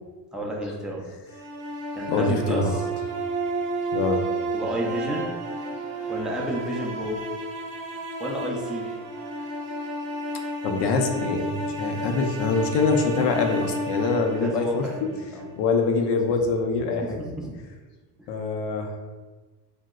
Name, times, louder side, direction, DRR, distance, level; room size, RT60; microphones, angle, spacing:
voice 1, 0.3-1.0 1.9-2.8 4.5-5.3 6.1-7.2 8.2-8.9 14.1-15.5 17.0-17.5 18.2-18.3, right 1 dB, ahead, -3 dB, 0.4 m, -31 dB
sound 1, 1.3-15.4, right 1 dB, 60° right, 0.7 m, -31 dB
voice 2, 2.1-2.8 3.9-4.2 10.6-15.1 15.6-17.2 18.3-19.0, left 4 dB, 60° left, 3 dB, 0.5 m, -24 dB
2.8 x 2.1 x 3.5 m, 1.3 s
supercardioid pair, 90°, 49 cm